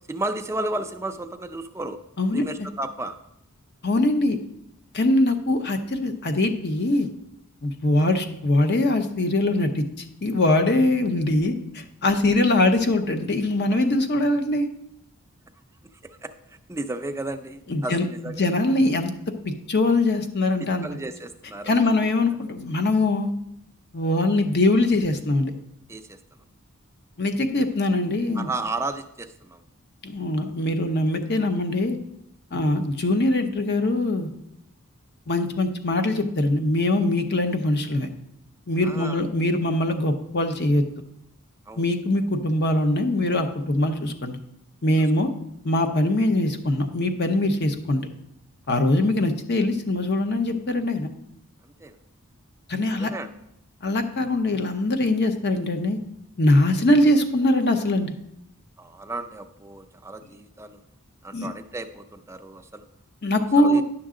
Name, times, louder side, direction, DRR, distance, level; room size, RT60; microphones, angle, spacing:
voice 1, 0.1-2.0 2.3-3.1 16.2-16.3 16.7-18.4 20.6-21.8 25.9-26.2 28.4-29.6 38.8-39.2 41.7-41.8 51.8-51.9 52.9-53.3 58.8-60.8 61.2-62.9 63.6-63.8, right 2 dB, 10° right, 6 dB, 0.4 m, -33 dB
voice 2, 3.8-4.4 4.9-7.1 7.6-14.7 17.7-18.1 18.4-19.1 19.7-20.9 21.7-23.3 23.9-25.5 27.2-28.5 30.0-32.0 32.5-34.3 35.3-38.1 38.7-40.8 41.8-44.4 44.8-45.3 45.6-48.1 48.7-51.1 52.7-53.1 53.8-56.0 56.4-58.1 61.3-61.5 63.2-63.8, left 2 dB, 50° left, 7 dB, 0.8 m, -22 dB
10.5 x 6.2 x 3.7 m, 0.79 s
head